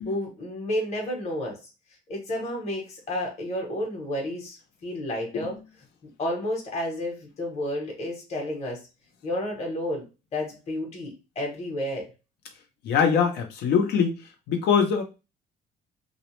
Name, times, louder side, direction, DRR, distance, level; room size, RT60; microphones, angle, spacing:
voice 1, 0.0-1.6 2.1-4.6 4.8-5.6 6.2-8.8 9.2-10.1 10.3-12.1, left 1 dB, 40° left, 0 dB, 1.0 m, -31 dB
voice 2, 12.8-14.2 14.5-15.0, left 6 dB, 75° left, 4 dB, 0.7 m, -22 dB
2.3 x 2.0 x 3.0 m, 0.28 s
cardioid pair, 110°, 17 cm